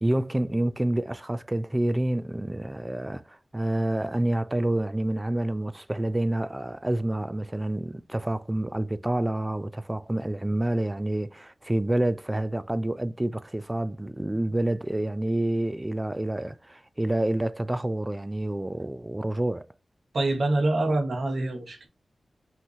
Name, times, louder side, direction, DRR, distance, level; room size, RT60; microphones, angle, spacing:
voice 1, 0.0-19.7, right 1 dB, 15° right, 0.3 m, -28 dB
voice 2, 20.1-21.9, right 2 dB, 70° right, 1.3 m, -25 dB
5.6 x 3.0 x 2.7 m
wide cardioid pair, 105°, 0 cm